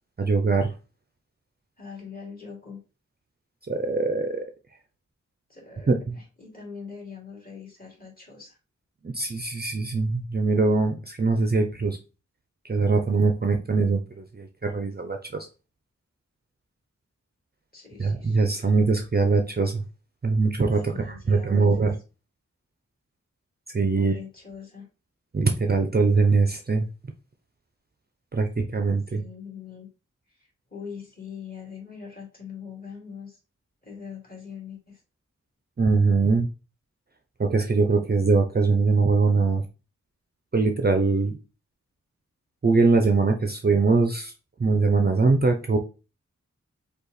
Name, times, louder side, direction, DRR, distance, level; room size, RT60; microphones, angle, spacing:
voice 1, 0.2-0.7 3.7-4.4 5.9-6.2 9.0-12.0 12.7-15.5 18.0-19.8 20.2-22.0 23.7-24.1 25.3-26.9 28.3-29.2 35.8-36.5 37.4-39.6 40.5-41.3 42.6-44.3 44.6-45.8, right 4 dB, 35° right, 0.5 m, -22 dB
voice 2, 1.8-2.8 5.5-8.6 17.7-18.6 20.8-21.7 23.9-24.9 29.1-29.9 30.7-33.4 33.8-35.0, left 6 dB, 30° left, 2.4 m, -42 dB
5.4 x 2.3 x 4.0 m
wide cardioid pair, 90°, 30 cm